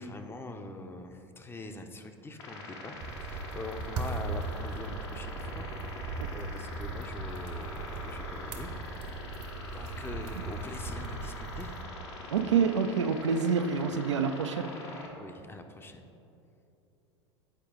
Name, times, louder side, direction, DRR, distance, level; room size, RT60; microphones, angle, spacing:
voice 1, 0.0-9.2 9.7-11.8 15.2-16.0, left 2 dB, 15° left, 6 dB, 0.5 m, -44 dB
sound 1, 2.4-15.1, left 2 dB, 70° left, 1.1 m, -43 dB
sound 2, 3.0-11.8, right 3 dB, 60° right, 0.9 m, -38 dB
voice 2, 12.3-14.7, right 6 dB, 85° right, 9 dB, 0.4 m, -27 dB
8.8 x 4.6 x 3.7 m, 2.8 s
hypercardioid pair, 85°, 15 cm